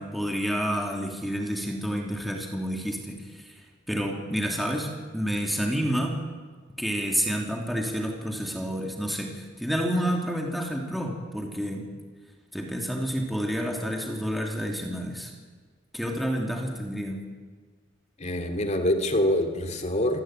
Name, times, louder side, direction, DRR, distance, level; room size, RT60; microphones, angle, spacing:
voice 1, 0.0-3.6 3.9-6.2 6.8-11.9 12.5-15.3 15.9-17.2, equal, ahead, 1 dB, 3.0 m, -29 dB
voice 2, 18.2-20.2, left 1 dB, 35° left, 6 dB, 3.0 m, -25 dB
27.0 x 19.0 x 9.1 m, 1.5 s
head